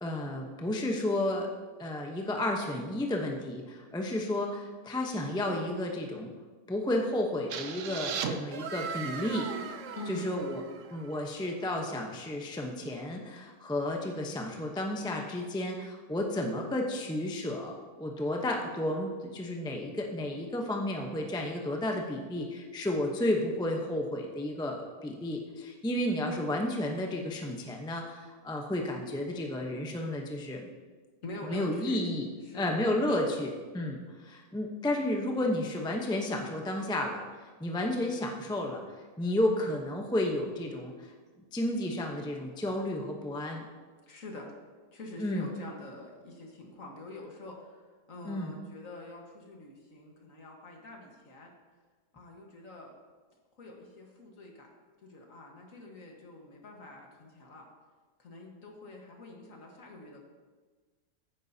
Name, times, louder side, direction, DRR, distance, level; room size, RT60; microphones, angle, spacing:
voice 1, 0.0-1.5 1.8-6.3 6.7-9.5 10.1-10.6 10.9-30.6 31.4-32.2 32.5-38.8 39.2-41.1 41.5-43.6 45.2-45.5 48.2-48.5, left 1 dB, 5° left, 1 dB, 0.5 m, -32 dB
sound 1, 7.5-11.2, right 7 dB, 65° right, 0.8 m, -38 dB
voice 2, 9.9-10.4 31.2-32.0 32.4-32.7 44.1-44.5 44.9-51.5 52.1-53.0 53.6-54.7 55.0-57.7 58.2-60.2, left 2 dB, 50° left, 0 dB, 1.8 m, -45 dB
15.0 x 9.3 x 2.8 m, 1.4 s
omnidirectional pair, 1.8 m